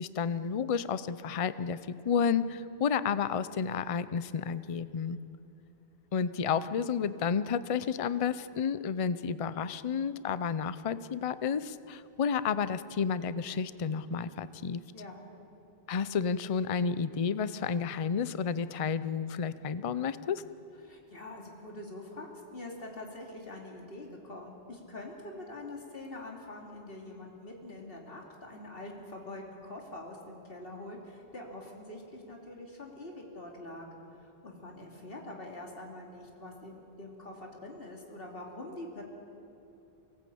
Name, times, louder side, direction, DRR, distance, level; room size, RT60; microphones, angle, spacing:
voice 1, 0.0-5.2 6.1-14.8 15.9-20.4, left 6 dB, 40° left, 14 dB, 0.6 m, -31 dB
voice 2, 14.9-15.3 20.8-33.9 34.2-39.0, left 2 dB, 65° left, 0 dB, 2.8 m, -45 dB
24.5 x 18.0 x 8.5 m, 2.8 s
omnidirectional pair, 1.0 m